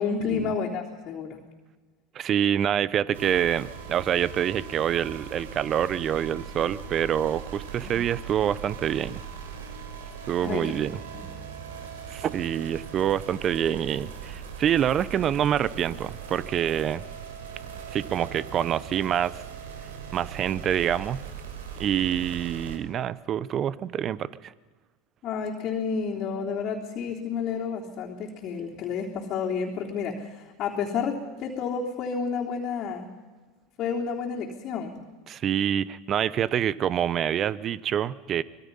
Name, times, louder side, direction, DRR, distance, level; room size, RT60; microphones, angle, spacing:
voice 1, 0.0-1.4 7.8-8.0 10.4-10.7 25.2-33.1 33.8-35.0, left 6 dB, 45° left, -3 dB, 3.5 m, -30 dB
voice 2, 2.1-9.2 10.3-11.0 12.1-17.1 17.9-19.5 20.1-21.2 21.8-24.5 35.3-38.4, right 9 dB, 40° right, 19 dB, 0.9 m, -26 dB
sound 1, 3.1-22.8, right 7 dB, 75° right, 3.8 m, -40 dB
25.5 x 21.5 x 5.6 m, 1.3 s
hypercardioid pair, 90°, 0 cm